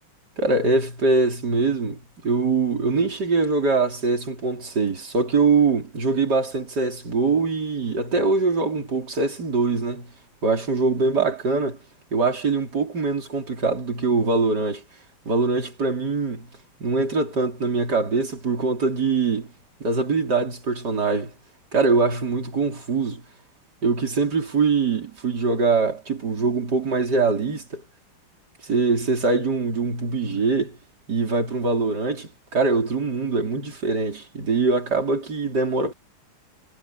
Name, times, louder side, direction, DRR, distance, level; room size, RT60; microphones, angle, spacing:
voice 1, 0.4-10.1 10.4-11.8 12.1-14.8 15.2-16.5 16.8-19.5 19.8-21.3 21.7-23.2 23.8-27.8 28.6-30.8 31.1-35.9, right 4 dB, 55° right, 4.5 m, -23 dB
omnidirectional pair, 2.2 m